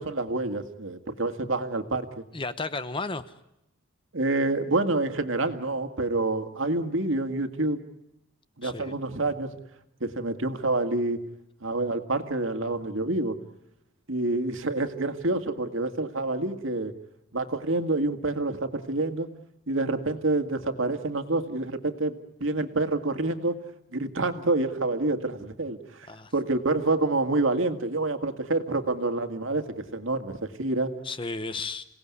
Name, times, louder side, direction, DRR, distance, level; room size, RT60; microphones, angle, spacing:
voice 1, 0.0-2.2 4.1-7.8 8.6-9.5 10.0-11.2 11.6-13.4 14.1-16.9 17.3-19.3 19.7-23.6 23.9-26.1 26.3-30.9, right 2 dB, 70° right, 8 dB, 2.0 m, -27 dB
voice 2, 2.3-3.2 8.6-9.0 26.1-26.3 31.0-31.9, left 3 dB, 25° left, 13 dB, 0.9 m, -33 dB
28.0 x 18.5 x 9.7 m, 0.84 s
head